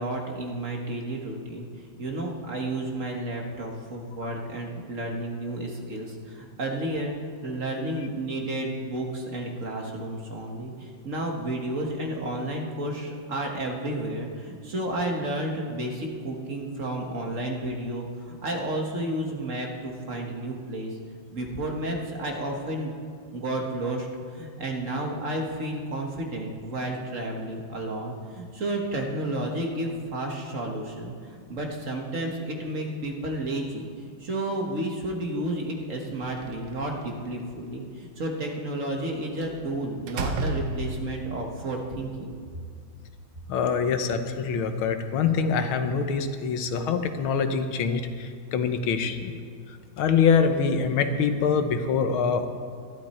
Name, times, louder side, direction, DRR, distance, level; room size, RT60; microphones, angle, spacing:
voice 1, 0.0-1.7 2.0-7.1 7.4-20.9 21.3-23.0 23.3-24.1 24.3-33.9 34.2-42.3, right 1 dB, 40° right, 1 dB, 1.7 m, -31 dB
Slam, 36.2-37.3 39.4-39.6 40.1-41.3, right 3 dB, 70° right, 1.5 m, -31 dB
voice 2, 43.5-49.3 50.0-52.5, left 6 dB, 90° left, 8 dB, 1.8 m, -24 dB
21.5 x 12.0 x 4.4 m, 2.1 s
omnidirectional pair, 2.2 m